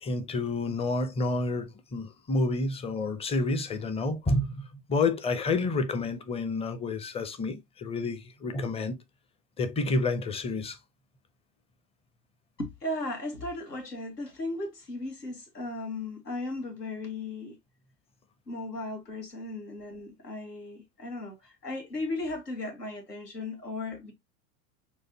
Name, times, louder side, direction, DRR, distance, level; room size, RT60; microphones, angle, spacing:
voice 1, 0.0-9.0 9.6-10.8, left 3 dB, 15° left, 0.6 m, -29 dB
voice 2, 12.6-17.6 18.5-24.1, left 2 dB, 85° left, 1.6 m, -36 dB
6.3 x 2.6 x 2.8 m
figure-of-eight pair, 85°, 47 cm